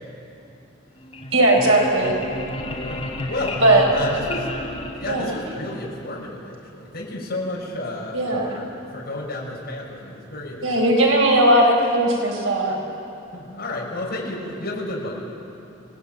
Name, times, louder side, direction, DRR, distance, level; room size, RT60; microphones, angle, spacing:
sound 1, 1.0-5.7, left 1 dB, 25° left, 3.6 m, -32 dB
voice 1, 1.3-2.2 3.6-3.8 5.1-5.3 8.1-8.5 10.6-12.8, right 1 dB, 85° right, 0 dB, 4.7 m, -18 dB
voice 2, 2.8-3.6 3.9-4.5 5.0-8.7 8.9-10.6 12.7-12.9 13.3-15.2, left 2 dB, 50° left, -4 dB, 5.9 m, -31 dB
27.5 x 19.0 x 9.1 m, 2.8 s
head